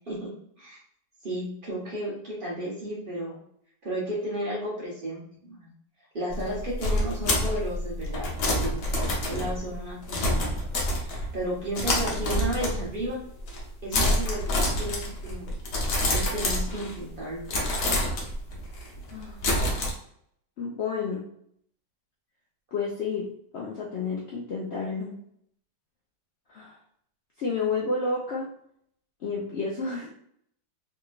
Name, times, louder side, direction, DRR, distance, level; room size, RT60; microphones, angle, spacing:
voice 1, 1.2-3.4 3.8-5.7 6.1-10.5 11.0-13.2 13.8-15.5 16.1-17.5, right 1 dB, 35° right, -5 dB, 1.1 m, -33 dB
sound 1, 6.3-11.4 11.7-13.1 13.4-13.7 13.9-17.1 17.5-19.9, left 1 dB, 70° left, 1.3 m, -27 dB
voice 2, 20.6-21.3 22.7-25.2 26.5-26.7 27.4-28.5 29.2-30.1, left 4 dB, 85° left, -3 dB, 0.5 m, -30 dB
3.6 x 2.9 x 2.4 m, 0.69 s
omnidirectional pair, 1.9 m